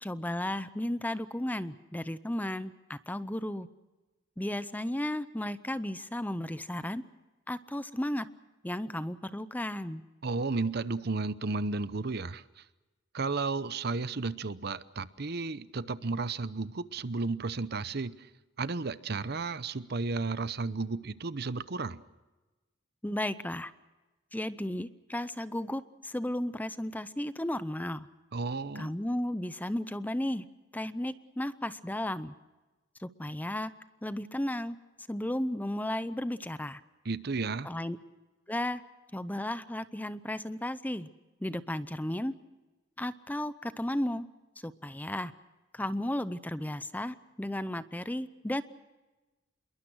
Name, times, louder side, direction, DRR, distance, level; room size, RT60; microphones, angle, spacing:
voice 1, 0.0-3.7 4.4-7.0 7.5-8.3 8.6-10.0 23.0-23.7 24.3-28.1 28.7-30.4 30.7-32.3 33.0-33.7 34.0-34.8 35.1-36.8 37.6-38.0 38.5-38.8 39.1-41.1 41.4-42.3 43.0-44.3 44.6-45.3 45.7-48.6, left 1 dB, 10° left, 14 dB, 0.7 m, -34 dB
voice 2, 10.2-12.6 13.1-18.3 18.6-22.0 28.3-28.9 37.0-37.7, right 3 dB, 55° right, 15 dB, 0.8 m, -33 dB
27.0 x 22.0 x 6.3 m, 1.2 s
head